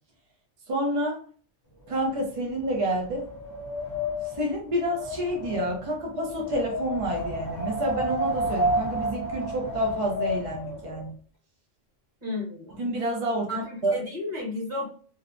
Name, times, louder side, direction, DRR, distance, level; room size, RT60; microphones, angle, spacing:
voice 1, 0.7-1.2 1.9-3.3 4.4-11.1 12.8-14.0, right 1 dB, 50° right, -1 dB, 0.4 m, -28 dB
Wind, 1.8-11.1, equal, 25° left, 0.6 m, -31 dB
voice 2, 12.2-12.8 13.5-14.8, left 2 dB, 35° right, -4 dB, 1.3 m, -33 dB
2.7 x 2.0 x 2.5 m, 0.43 s
omnidirectional pair, 1.3 m